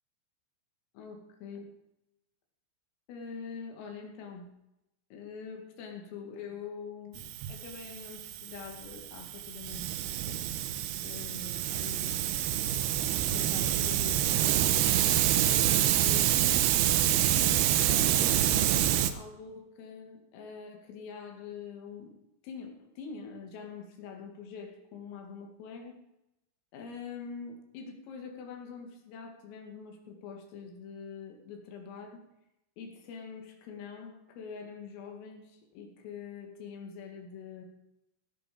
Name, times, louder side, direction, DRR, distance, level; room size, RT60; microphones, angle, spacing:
voice 1, 0.9-1.7 3.1-4.5 5.1-10.5 11.0-12.2 13.3-14.9 15.4-16.7 17.3-22.1 22.4-26.0 26.7-32.2 32.8-37.7, left 5 dB, 85° left, 3 dB, 5.0 m, -44 dB
Hiss, 7.2-19.1, right 12 dB, 85° right, 2.2 m, -27 dB
17.5 x 11.0 x 5.3 m, 0.86 s
omnidirectional pair, 5.8 m